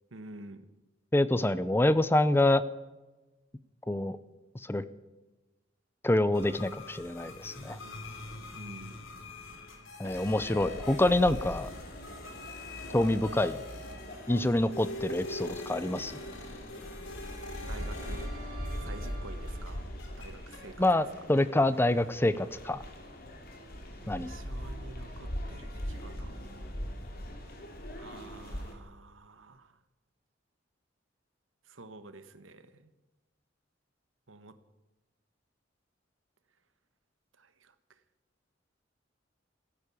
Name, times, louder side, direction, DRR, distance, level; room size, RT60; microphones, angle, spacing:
voice 1, 0.1-0.7 8.5-9.1 17.6-18.3 18.8-19.8 20.2-20.8 24.0-26.3 27.9-29.7 31.7-32.9 34.3-34.5 37.4-37.7, right 2 dB, 90° right, 11 dB, 1.3 m, -49 dB
voice 2, 1.1-2.6 3.9-4.2 4.6-4.8 6.0-7.8 10.0-11.7 12.9-13.6 14.3-16.1 20.8-22.8 24.1-24.3, left 1 dB, 10° left, 15 dB, 0.5 m, -26 dB
sound 1, 6.3-19.2 19.5-20.7, left 2 dB, 90° left, 3.1 m, -43 dB
sound 2, 10.0-28.7, equal, 50° left, 2.8 m, -41 dB
sound 3, 16.4-19.8, right 2 dB, 45° right, 2.9 m, -50 dB
15.5 x 10.5 x 8.4 m, 1.1 s
head